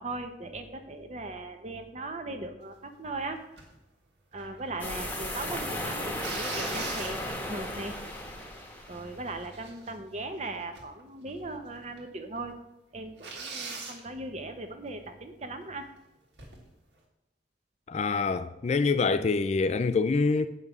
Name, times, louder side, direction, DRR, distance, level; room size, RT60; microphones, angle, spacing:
voice 1, 0.0-3.4 4.3-7.2 7.5-8.0 8.9-12.5 12.9-15.9, right 2 dB, 40° right, 0.8 m, -38 dB
sound 1, 3.6-3.8 4.3-5.2 6.2-7.5 8.1-8.2 8.6-9.0 9.3-10.2 10.7-11.0 11.3-11.4 12.0-12.1 12.4-12.5 13.2-14.0 16.3-16.7, right 4 dB, 70° right, 1.6 m, -40 dB
sound 2, 4.8-9.3, left 1 dB, 10° left, 1.1 m, -35 dB
voice 2, 17.9-20.5, left 4 dB, 35° left, 0.3 m, -25 dB
7.9 x 5.4 x 6.1 m
head